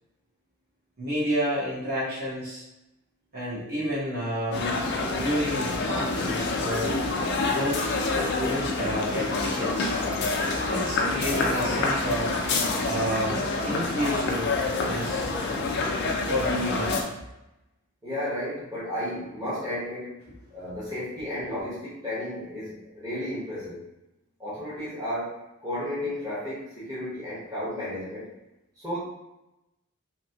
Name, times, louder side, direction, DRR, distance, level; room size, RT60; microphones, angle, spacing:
voice 1, 1.0-2.6 3.3-4.7 5.1-6.9 7.5-7.9 8.1-9.9 10.7-14.5 14.8-15.3 16.2-17.1, equal, 45° right, -8 dB, 1.1 m, -30 dB
sound 1, 4.5-17.0, left 3 dB, 50° left, 0.4 m, -27 dB
voice 2, 18.0-20.2 20.5-23.8 24.4-28.3 28.8-29.0, left 1 dB, 15° right, -11 dB, 1.0 m, -33 dB
2.9 x 2.8 x 2.7 m, 0.94 s
head